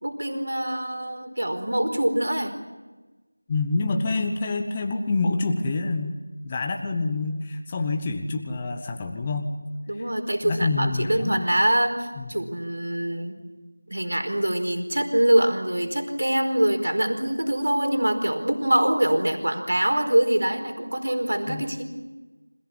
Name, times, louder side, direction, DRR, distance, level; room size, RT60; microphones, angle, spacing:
voice 1, 0.0-2.5 9.9-13.4 13.9-21.8, right 1 dB, 60° right, 5 dB, 4.6 m, -24 dB
voice 2, 3.5-9.5 9.9-10.0 10.4-11.5 12.2-12.3 21.5-21.6, left 3 dB, 10° left, 4 dB, 0.9 m, -27 dB
26.5 x 17.0 x 9.9 m, 1.2 s
figure-of-eight pair, 175°, 0 cm